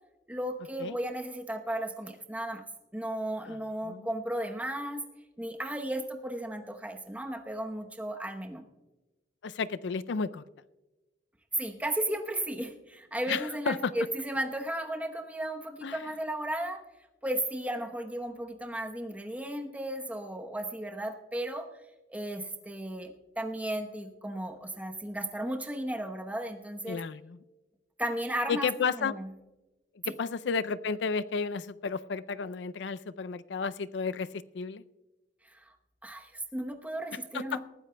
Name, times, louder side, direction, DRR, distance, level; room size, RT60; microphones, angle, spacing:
voice 1, 0.3-2.6 2.9-5.1 5.4-8.6 11.6-16.8 17.2-21.7 22.1-27.0 28.0-29.3 30.0-30.1 35.4-35.6 36.0-37.6, right 1 dB, 10° right, 4 dB, 0.9 m, -35 dB
voice 2, 9.4-10.4 13.3-13.9 15.8-16.1 26.9-27.4 28.5-29.1 30.1-34.3 34.5-34.8 37.3-37.6, left 5 dB, 70° left, 15 dB, 0.4 m, -32 dB
19.5 x 14.5 x 2.2 m, 1.1 s
head